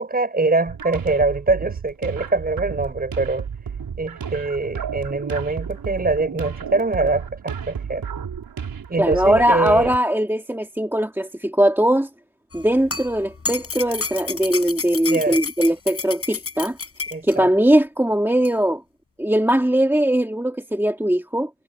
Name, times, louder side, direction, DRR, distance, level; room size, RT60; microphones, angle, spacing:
voice 1, 0.0-3.5 4.0-8.0 8.9-9.9 15.1-15.4 17.1-17.5, right 3 dB, 20° right, 6.4 m, -23 dB
sound 1, 0.7-10.0, right 7 dB, 55° right, 5.2 m, -32 dB
voice 2, 9.0-12.1 12.5-16.8 17.2-18.8 19.2-21.5, right 1 dB, 5° right, 2.1 m, -20 dB
sound 2, 12.5-17.4 18.5-18.6, left 4 dB, 35° left, 4.7 m, -30 dB
cardioid pair, 120°, 41 cm